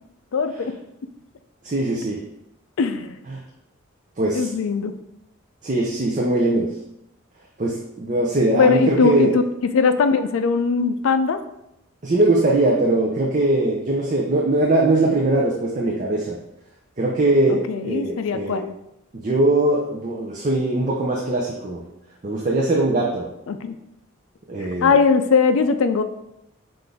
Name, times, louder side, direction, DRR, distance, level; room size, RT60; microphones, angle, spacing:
voice 1, 0.3-0.8 2.8-3.2 4.3-4.9 8.5-11.4 17.5-18.7 23.5-23.8 24.8-26.0, left 5 dB, 75° left, 9 dB, 0.4 m, -20 dB
voice 2, 1.6-2.2 3.3-3.4 4.2-4.5 5.6-6.7 7.6-9.3 12.0-16.4 17.0-18.6 19.1-21.8 22.2-23.3 24.5-24.9, right 2 dB, 35° right, -2 dB, 0.5 m, -21 dB
5.7 x 2.5 x 3.4 m, 0.83 s
head